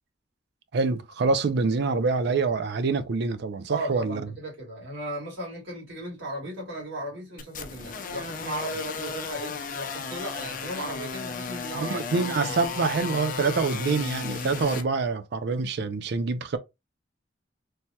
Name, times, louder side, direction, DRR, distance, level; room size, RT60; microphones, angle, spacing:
voice 1, 0.7-4.2 11.8-16.6, right 4 dB, 65° right, 0.4 m, -26 dB
voice 2, 3.7-12.0 12.4-12.8, right 1 dB, 80° right, 1.9 m, -36 dB
sound 1, 7.4-14.8, left 5 dB, 45° left, 0.5 m, -34 dB
3.3 x 2.2 x 2.8 m
head